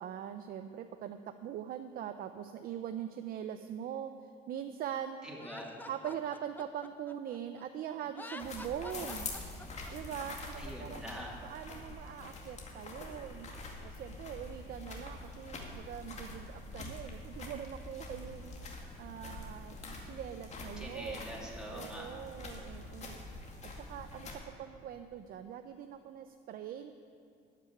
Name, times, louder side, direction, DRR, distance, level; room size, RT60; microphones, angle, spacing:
voice 1, 0.0-4.1 4.5-5.2 5.9-9.3 9.9-11.0 11.4-13.5 13.8-18.6 19.0-19.8 20.0-21.2 21.7-23.2 23.7-26.9, right 9 dB, 60° right, 8 dB, 0.6 m, -42 dB
voice 2, 5.2-5.7 10.6-11.3 20.8-22.1, equal, 5° right, -4 dB, 2.8 m, -44 dB
Laughter, 5.4-7.6 8.1-9.9, left 2 dB, 10° left, 0.6 m, -48 dB
sound 1, 8.4-24.3, left 2 dB, 40° left, 2.2 m, -45 dB
13.5 x 6.2 x 9.9 m, 2.4 s
cardioid pair, 110°, 17 cm